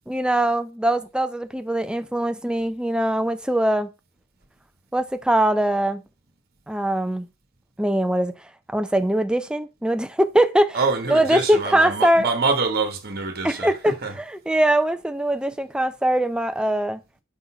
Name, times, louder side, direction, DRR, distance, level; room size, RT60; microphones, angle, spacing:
voice 1, 0.1-3.9 4.9-6.0 6.7-7.3 7.8-8.3 8.7-10.8 11.1-12.3 13.4-17.0, right 1 dB, 5° right, 0.4 m, -22 dB
voice 2, 10.7-14.2, right 4 dB, 50° right, 1.2 m, -25 dB
5.3 x 3.8 x 5.7 m
head